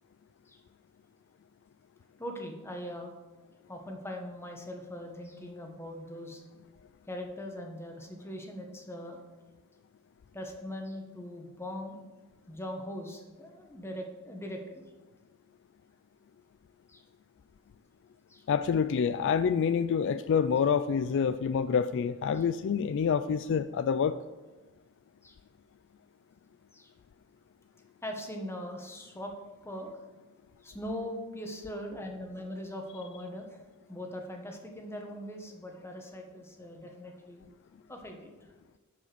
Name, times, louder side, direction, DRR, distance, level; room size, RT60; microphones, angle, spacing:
voice 1, 2.2-3.1 3.7-6.4 7.1-9.2 10.3-12.0 12.5-14.8 16.9-17.0 18.3-18.4 22.3-22.4 25.2-25.4 26.7-26.9 28.0-29.3 29.6-30.0 30.6-33.6 33.9-37.4 37.9-38.5, left 1 dB, 10° left, 3 dB, 1.2 m, -41 dB
voice 2, 18.5-24.2, left 6 dB, 55° left, 12 dB, 0.3 m, -27 dB
10.0 x 5.0 x 6.8 m, 1.2 s
head